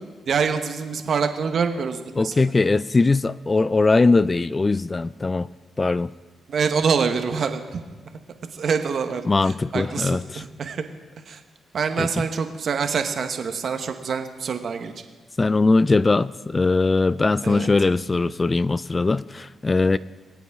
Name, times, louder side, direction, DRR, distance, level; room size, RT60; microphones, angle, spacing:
voice 1, 0.3-2.3 6.5-7.8 8.5-10.8 11.3-11.4 11.7-14.9 17.4-17.7, right 6 dB, 60° right, 7 dB, 1.2 m, -25 dB
voice 2, 2.2-5.5 5.8-6.1 9.3-10.4 12.0-12.3 15.4-20.0, left 3 dB, 30° left, 18 dB, 0.3 m, -20 dB
22.5 x 8.4 x 3.6 m, 1.3 s
cardioid pair, 65°, 0 cm